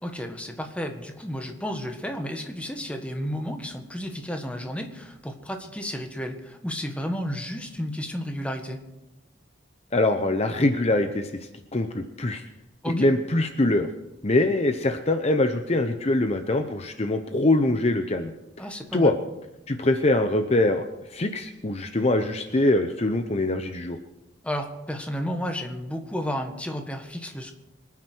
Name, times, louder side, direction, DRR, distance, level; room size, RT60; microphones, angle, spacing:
voice 1, 0.0-8.8 12.8-13.1 18.6-19.1 24.4-27.5, equal, 5° left, 4 dB, 1.5 m, -32 dB
voice 2, 9.9-12.4 12.9-13.9 14.2-18.7 18.9-19.2 19.7-24.0, left 2 dB, 35° left, 7 dB, 0.8 m, -23 dB
25.0 x 9.6 x 4.6 m, 0.94 s
head